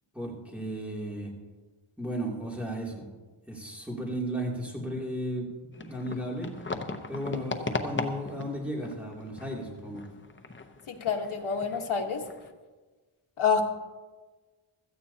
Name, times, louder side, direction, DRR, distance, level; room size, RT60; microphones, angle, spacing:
voice 1, 0.1-1.3 2.0-3.1 3.5-6.5 7.1-10.1, equal, 5° right, -3 dB, 2.8 m, -35 dB
sound 1, 5.7-12.5, left 3 dB, 25° left, 0.8 m, -38 dB
voice 2, 10.9-12.2 13.4-13.6, left 6 dB, 75° left, 3 dB, 1.4 m, -27 dB
16.5 x 14.0 x 2.8 m, 1.3 s
wide cardioid pair, 125°, 49 cm